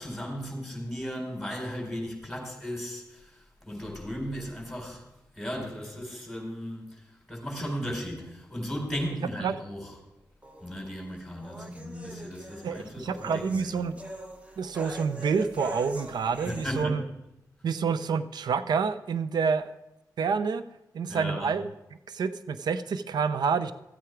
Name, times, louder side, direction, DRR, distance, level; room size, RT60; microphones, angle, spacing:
voice 1, 0.0-5.0 5.3-7.0 7.3-9.9 10.6-13.9 16.4-17.0 21.1-21.5, equal, 5° left, 1 dB, 4.0 m, -36 dB
sound 1, 10.4-16.8, equal, 20° right, 1.3 m, -43 dB
voice 2, 12.6-14.0 14.6-17.0 17.6-19.7 20.2-20.6 20.9-21.7 22.1-23.7, right 5 dB, 85° right, 13 dB, 0.6 m, -28 dB
13.5 x 8.5 x 4.6 m, 0.91 s
cardioid pair, 60°, 7 cm